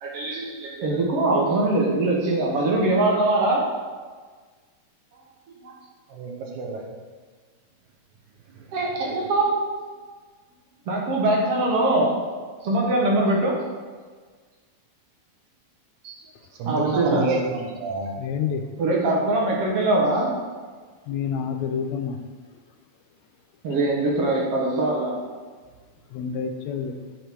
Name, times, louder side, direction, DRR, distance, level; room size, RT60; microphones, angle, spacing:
voice 1, 0.0-3.6 5.6-5.7 8.7-9.6 10.9-12.1 12.6-13.6 16.0-16.2 16.7-17.3 18.8-20.3 23.6-25.2, right 2 dB, 60° right, -2 dB, 2.2 m, -22 dB
voice 2, 6.1-6.9 16.6-18.2, right 4 dB, 80° right, 2 dB, 2.5 m, -28 dB
voice 3, 18.2-18.6 21.1-22.2 26.1-27.2, left 7 dB, 80° left, 6 dB, 1.8 m, -28 dB
7.6 x 6.8 x 4.6 m, 1.5 s
omnidirectional pair, 3.3 m